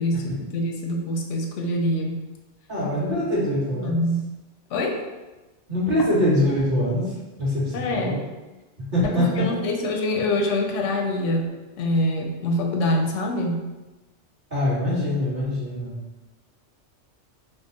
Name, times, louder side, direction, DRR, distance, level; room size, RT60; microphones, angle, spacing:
voice 1, 0.0-2.2 3.8-4.3 4.7-5.1 7.7-8.2 9.2-13.6, left 1 dB, 85° left, 2 dB, 0.9 m, -25 dB
voice 2, 2.7-4.0 5.7-8.2 8.8-9.3 14.5-16.0, left 1 dB, 40° right, -10 dB, 1.7 m, -24 dB
3.7 x 2.0 x 3.8 m, 1.1 s
omnidirectional pair, 1.2 m